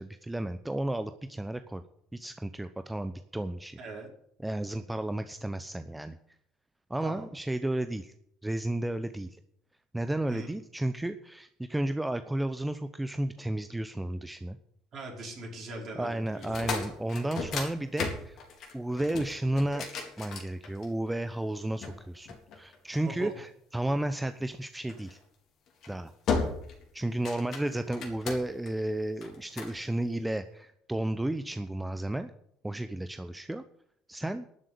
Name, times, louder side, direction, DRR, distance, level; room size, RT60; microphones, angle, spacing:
voice 1, 0.0-1.8 2.1-3.8 4.4-6.2 6.9-8.1 8.4-9.4 9.9-14.6 15.9-18.4 18.7-19.9 20.2-22.3 22.5-25.2 25.9-26.1 26.9-32.3 32.6-33.6 34.1-34.5, right 1 dB, 10° right, 10 dB, 0.9 m, -32 dB
voice 2, 3.8-4.1 7.0-7.3 10.3-10.6 14.9-16.5 16.8-17.0 22.9-23.3, right 2 dB, 50° right, 0 dB, 5.4 m, -41 dB
sound 1, 16.3-21.1 21.8-23.1 24.9-25.2 25.7-25.9 26.3-26.8 27.1-28.7 29.2-29.8, left 4 dB, 55° left, 3.8 m, -35 dB
12.0 x 7.5 x 9.4 m, 0.70 s
figure-of-eight pair, 55°, 0 cm